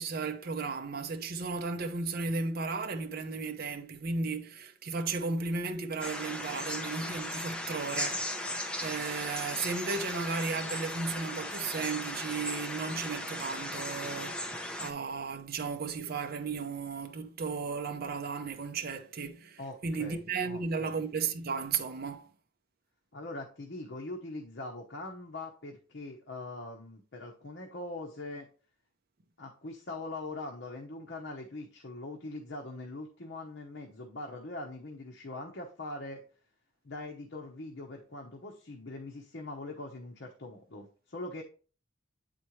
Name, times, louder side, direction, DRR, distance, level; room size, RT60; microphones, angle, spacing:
voice 1, 0.0-22.3, right 4 dB, 55° right, 0.6 m, -35 dB
sound 1, 6.0-14.9, left 1 dB, 5° left, 0.8 m, -37 dB
voice 2, 19.6-20.9 23.1-28.5 29.4-36.2 36.8-41.4, left 2 dB, 60° left, 1.0 m, -42 dB
8.4 x 4.3 x 3.1 m
head